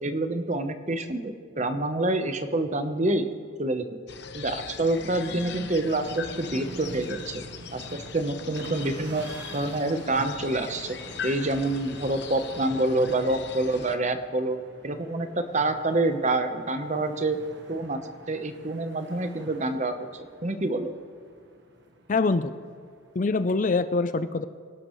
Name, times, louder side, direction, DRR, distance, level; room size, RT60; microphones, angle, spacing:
voice 1, 0.0-3.3 3.6-4.0 4.3-7.4 7.7-9.3 9.5-11.0 11.2-14.6 14.8-17.4 17.7-18.0 18.3-20.9, right 2 dB, 35° right, 8 dB, 0.9 m, -27 dB
sound 1, 4.1-14.0, left 6 dB, 55° left, 0.9 m, -41 dB
sound 2, 4.9-23.5, right 1 dB, 55° right, 1.3 m, -47 dB
voice 2, 22.1-22.5 23.2-24.5, left 3 dB, 40° left, 12 dB, 0.4 m, -24 dB
25.5 x 12.0 x 3.1 m, 2.3 s
head